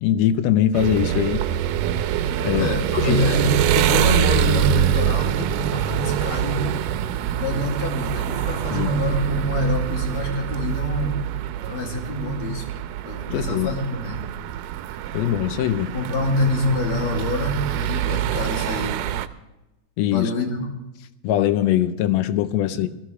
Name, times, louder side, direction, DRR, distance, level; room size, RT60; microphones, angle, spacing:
voice 1, 0.0-1.5 2.4-2.7 3.0-3.5 8.7-8.9 13.3-13.7 15.1-15.9 20.0-20.3 21.2-22.9, left 11 dB, 75° left, 12 dB, 1.6 m, -22 dB
sound 1, 0.7-19.3, right 11 dB, 85° right, 2.2 m, -25 dB
voice 2, 2.5-6.7 7.4-11.2 11.7-12.7 13.1-14.2 15.9-19.0 20.1-20.7 22.6-22.9, left 1 dB, 60° left, 1 dB, 3.6 m, -26 dB
19.5 x 15.0 x 3.3 m, 0.98 s
omnidirectional pair, 3.7 m